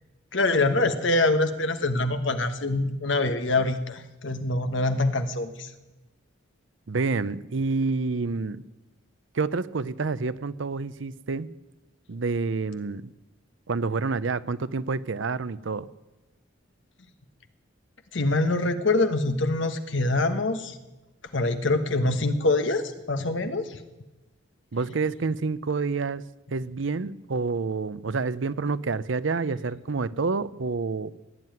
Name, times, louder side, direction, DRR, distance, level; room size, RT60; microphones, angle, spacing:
voice 1, 0.3-5.7 18.1-20.7 21.3-23.6, left 2 dB, 65° left, 9 dB, 1.3 m, -24 dB
voice 2, 6.9-8.6 9.3-11.5 12.1-13.1 13.7-15.9 24.7-26.2 26.5-31.1, right 4 dB, 65° right, 16 dB, 0.6 m, -28 dB
17.0 x 9.4 x 9.2 m, 1.1 s
head